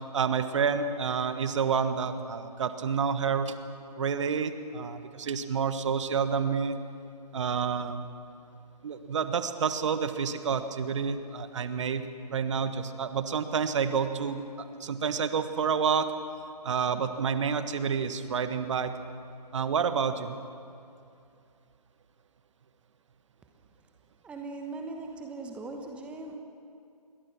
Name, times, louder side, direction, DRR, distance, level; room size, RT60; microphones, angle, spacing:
voice 1, 0.1-3.5 3.9-6.8 7.3-8.1 8.8-12.0 12.3-16.1 16.6-18.9 19.5-20.4, right 6 dB, 45° right, 10 dB, 1.5 m, -29 dB
voice 2, 24.2-26.3, right 3 dB, 5° right, 2 dB, 1.1 m, -39 dB
28.0 x 22.0 x 6.1 m, 2.5 s
figure-of-eight pair, 145°, 21 cm